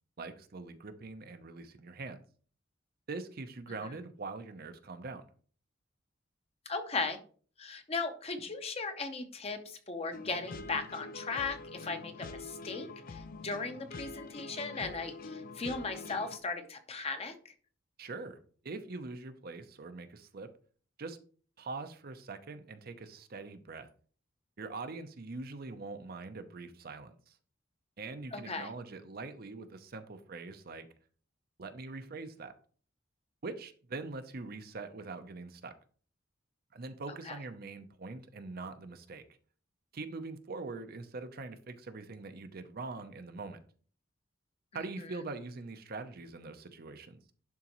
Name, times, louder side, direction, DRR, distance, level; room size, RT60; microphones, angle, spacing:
voice 1, 0.2-2.2 3.1-5.3 18.0-20.5 21.0-21.2 21.6-23.9 24.6-27.3 28.0-30.9 31.6-32.6 33.4-35.7 36.7-39.2 39.9-43.6 44.7-47.2, right 3 dB, 55° right, 9 dB, 0.7 m, -43 dB
voice 2, 6.7-7.2 7.6-17.3 28.3-28.7 37.3-37.4 44.7-44.8, left 4 dB, 35° left, 7 dB, 0.8 m, -37 dB
sound 1, 10.1-16.4, left 3 dB, 50° left, 0.5 m, -45 dB
11.0 x 3.8 x 3.0 m, 0.43 s
head